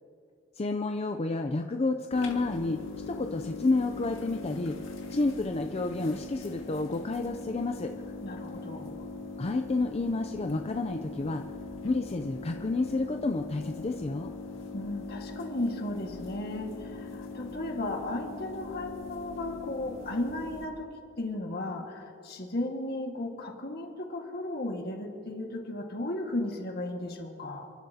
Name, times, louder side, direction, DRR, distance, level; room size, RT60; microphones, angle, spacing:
voice 1, 0.6-2.8 3.1-4.8 5.1-7.9 9.4-11.4 11.8-14.3, left 3 dB, 30° left, 5 dB, 0.5 m, -30 dB
sound 1, 2.1-20.6, left 3 dB, 80° left, 2.0 m, -41 dB
voice 2, 8.2-9.1 14.7-27.7, left 1 dB, 55° left, 2 dB, 1.8 m, -35 dB
29.5 x 11.5 x 2.8 m, 2.4 s
head